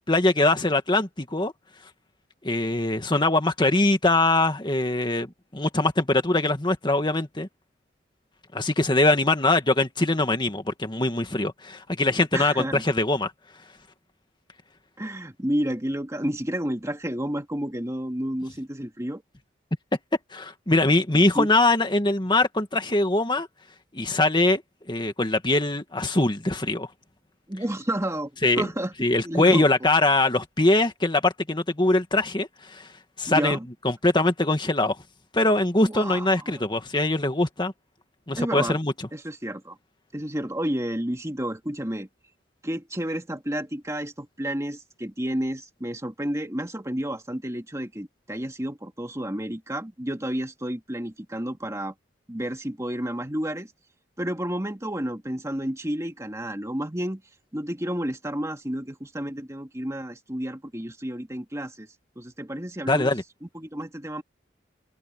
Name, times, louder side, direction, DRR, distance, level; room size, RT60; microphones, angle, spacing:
voice 1, 0.1-1.5 2.4-7.5 8.5-13.3 20.3-23.5 23.9-24.6 24.9-26.9 28.4-28.7 29.0-32.9 33.2-33.6 33.8-35.0 35.3-37.7 38.3-38.9 62.9-63.2, left 2 dB, 25° left, 2.0 m, -22 dB
voice 2, 12.3-12.8 15.0-19.2 21.3-21.5 27.5-28.3 28.6-28.9 29.2-29.6 33.3-33.7 35.8-36.6 38.4-38.8 39.1-39.8 40.1-42.1 42.6-51.9 52.3-53.7 54.2-57.2 57.5-61.9 62.2-63.1 63.4-64.2, right 1 dB, 15° right, 2.2 m, -31 dB
head